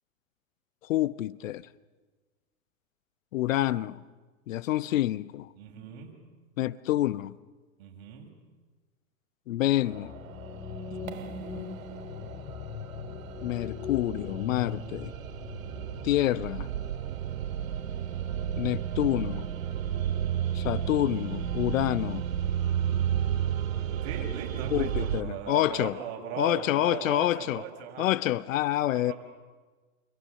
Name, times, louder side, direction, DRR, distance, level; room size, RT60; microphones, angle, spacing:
voice 1, 0.8-1.7 3.3-4.0 4.5-5.5 6.6-7.4 9.5-10.1 13.4-15.1 16.0-16.7 18.6-19.5 20.5-22.2 24.7-26.0 26.4-27.6 28.0-29.1, left 14 dB, 70° left, 1.0 m, -27 dB
voice 2, 5.6-6.1 7.8-8.3 10.9-11.4 24.0-28.3 28.9-29.1, right 7 dB, 50° right, 6.7 m, -39 dB
sound 1, 9.8-25.2, right 9 dB, 75° right, 2.1 m, -33 dB
sound 2, 9.9-16.3, left 6 dB, 35° left, 6.6 m, -40 dB
29.0 x 28.5 x 6.8 m
hypercardioid pair, 125°, 41 cm